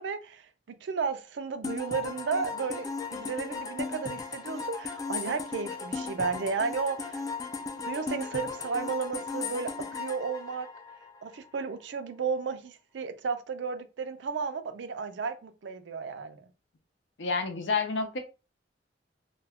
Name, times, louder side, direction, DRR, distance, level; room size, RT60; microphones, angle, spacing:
voice 1, 0.0-7.2 7.9-10.7 11.2-16.4, right 5 dB, 70° right, 0.4 m, -33 dB
sound 1, 1.6-11.3, left 4 dB, 20° left, 0.3 m, -36 dB
voice 2, 17.2-18.2, left 4 dB, 75° left, 0.6 m, -29 dB
2.2 x 2.2 x 3.4 m
head